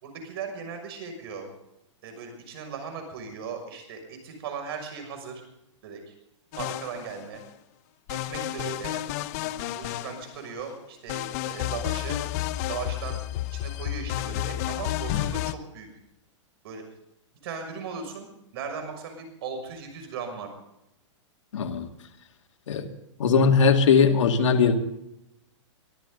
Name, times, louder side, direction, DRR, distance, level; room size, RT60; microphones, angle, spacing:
voice 1, 0.0-1.5 2.0-5.3 5.8-6.1 6.6-7.4 8.1-9.1 9.4-12.2 12.7-13.2 13.5-15.9 16.6-16.8 17.4-18.3 18.5-20.5, right 5 dB, 50° right, 5 dB, 6.4 m, -37 dB
sound 1, 6.5-7.4 8.1-10.6 11.1-15.5, left 14 dB, 35° left, 0.7 m, -31 dB
voice 2, 21.5-21.9 22.7-22.9 23.2-24.8, left 5 dB, 75° left, 5 dB, 2.4 m, -20 dB
24.0 x 14.0 x 4.0 m, 0.82 s
hypercardioid pair, 160°, 16 cm